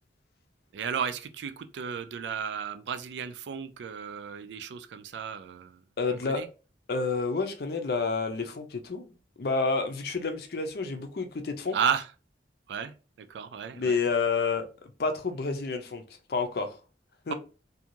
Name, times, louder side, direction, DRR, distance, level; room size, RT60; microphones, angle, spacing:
voice 1, 0.7-5.8 6.1-6.5 11.7-12.1 12.7-14.0, right 7 dB, 80° right, 0.4 m, -33 dB
voice 2, 6.0-6.4 6.9-9.1 9.4-11.8 13.7-14.7 15.0-16.0 16.3-16.7 17.3-17.4, left 4 dB, 60° left, 0.5 m, -29 dB
2.6 x 2.3 x 2.8 m
head